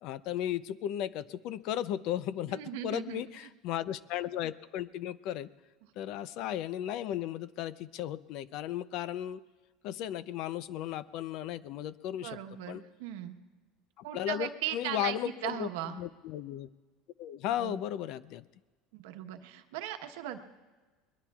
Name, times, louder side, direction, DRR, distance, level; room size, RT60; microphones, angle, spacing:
voice 1, 0.0-5.5 6.0-9.4 9.8-12.4 12.7-12.8 14.0-16.7 17.2-18.4, left 11 dB, 55° left, 17 dB, 0.5 m, -35 dB
voice 2, 2.5-3.2 12.2-13.4 14.0-16.0 17.5-17.8 18.9-20.4, right 12 dB, 90° right, 7 dB, 1.1 m, -38 dB
22.5 x 21.5 x 2.4 m, 1.3 s
cardioid pair, 150°, 0 cm